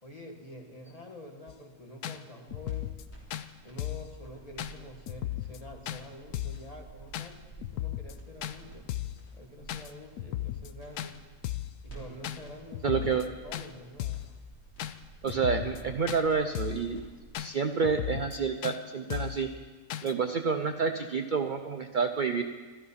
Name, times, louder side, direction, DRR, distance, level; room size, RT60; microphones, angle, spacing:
voice 1, 0.0-2.9 3.6-8.9 9.3-11.2 11.8-14.3, left 1 dB, 25° left, 1 dB, 1.6 m, -47 dB
sound 1, 1.5-1.6 2.0-2.2 2.5-3.0 3.3-3.5 3.8-4.1 4.6-4.7 5.1-5.6 5.9-6.0 6.3-6.6 7.1-7.3 7.6-8.1 8.4-8.6 8.9-9.2 9.7-9.9 10.2-10.7 11.0-11.1 11.4-11.8 12.2-12.4 12.7-13.3 13.5-13.7 14.0-14.3 14.8-14.9 15.3-15.8 16.1-16.2 16.6-16.9 17.3-17.5 17.8-18.4 18.6-18.8 19.1-19.4 19.9-20.1, left 13 dB, 85° left, 1.2 m, -35 dB
sound 2, 2.5-17.3, right 3 dB, 60° left, 4.0 m, -52 dB
voice 2, 12.8-13.2 15.2-17.0 17.4-19.5 20.0-22.4, right 5 dB, 65° right, 6 dB, 0.4 m, -29 dB
13.5 x 13.0 x 5.7 m, 1.4 s
omnidirectional pair, 1.6 m